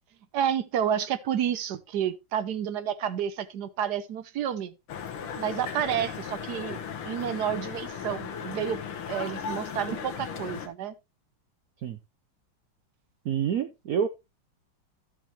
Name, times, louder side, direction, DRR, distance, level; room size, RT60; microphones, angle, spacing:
voice 1, 0.3-4.7 5.4-8.8 9.1-10.9, right 9 dB, 65° right, 1.1 m, -30 dB
sound 1, 4.9-10.7, left 7 dB, 85° left, 2.0 m, -36 dB
voice 2, 13.2-14.1, right 8 dB, 80° right, 0.8 m, -27 dB
12.0 x 7.3 x 3.0 m
omnidirectional pair, 2.3 m